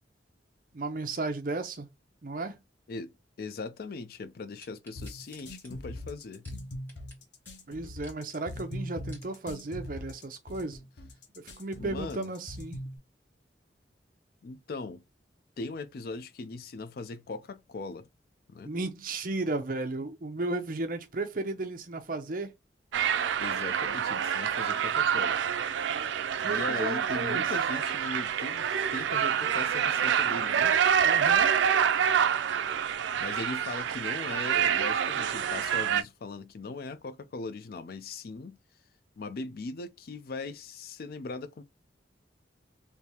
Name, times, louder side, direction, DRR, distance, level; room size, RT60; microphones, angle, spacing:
voice 1, 0.7-1.9 2.2-2.6 7.7-10.8 11.4-12.8 18.6-22.5 26.4-27.4 31.0-31.5, right 2 dB, 50° right, 0.7 m, -34 dB
voice 2, 3.4-6.4 11.8-12.3 14.4-15.0 15.6-18.1 18.5-18.7 23.4-25.4 26.5-30.8 33.2-38.6 39.2-41.6, left 3 dB, 55° left, 0.4 m, -39 dB
sound 1, 4.6-7.2 7.4-7.5 7.9-8.4 8.8-9.3 9.9-10.0, equal, 10° left, 1.6 m, -55 dB
sound 2, 5.0-13.0, left 1 dB, 75° left, 0.8 m, -41 dB
sound 3, 22.9-36.0, right 8 dB, 85° right, 0.4 m, -27 dB
3.4 x 2.7 x 2.8 m
head